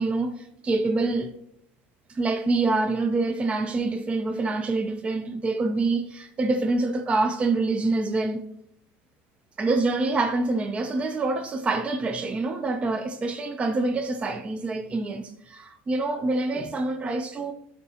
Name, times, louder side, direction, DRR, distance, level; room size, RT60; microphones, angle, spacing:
voice 1, 0.0-1.3 2.1-8.4 9.6-17.5, right 3 dB, 20° right, 0.4 m, -26 dB
11.5 x 4.0 x 2.8 m
supercardioid pair, 120°, 5 cm